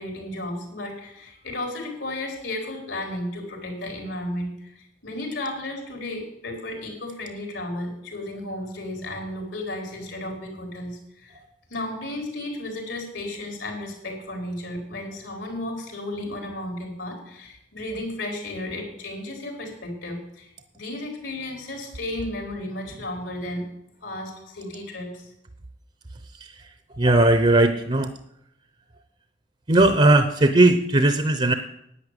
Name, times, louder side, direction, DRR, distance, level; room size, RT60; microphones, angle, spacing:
voice 1, 0.0-11.4 11.7-20.5 20.7-23.6 24.0-25.3, left 1 dB, 80° left, 2 dB, 4.4 m, -33 dB
voice 2, 26.9-28.1 29.7-31.5, right 2 dB, 35° right, 8 dB, 0.8 m, -18 dB
11.0 x 9.3 x 8.3 m, 0.78 s
head